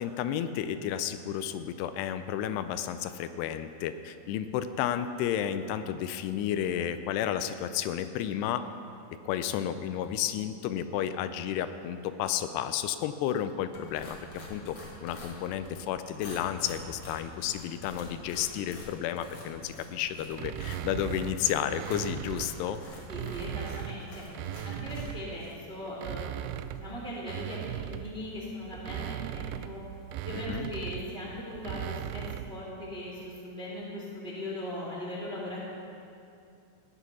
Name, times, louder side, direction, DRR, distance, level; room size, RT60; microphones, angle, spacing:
voice 1, 0.0-8.6 9.2-14.2 14.5-22.8 30.3-30.7, left 10 dB, 85° left, 11 dB, 2.6 m, -32 dB
sound 1, 13.7-25.6, left 1 dB, 45° left, 1.7 m, -46 dB
sound 2, 20.3-22.6 23.0-25.4 25.9-32.6, right 11 dB, 85° right, 2.3 m, -38 dB
voice 2, 23.1-24.2 24.6-29.8 30.2-32.2 32.5-35.6, left 1 dB, 30° right, -4 dB, 1.1 m, -39 dB
15.0 x 9.8 x 6.1 m, 2.6 s
omnidirectional pair, 4.8 m